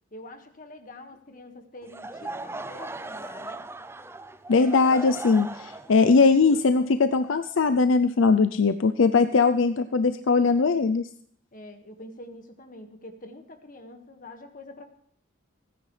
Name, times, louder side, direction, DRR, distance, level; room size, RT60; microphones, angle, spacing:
voice 1, 0.1-3.6 11.5-14.9, left 1 dB, 40° left, 5 dB, 1.8 m, -45 dB
Laughter / Crowd, 1.8-7.8, right 2 dB, 10° right, 0.5 m, -39 dB
voice 2, 4.5-11.1, left 4 dB, 70° left, 10 dB, 0.5 m, -20 dB
29.5 x 10.0 x 3.3 m, 0.63 s
head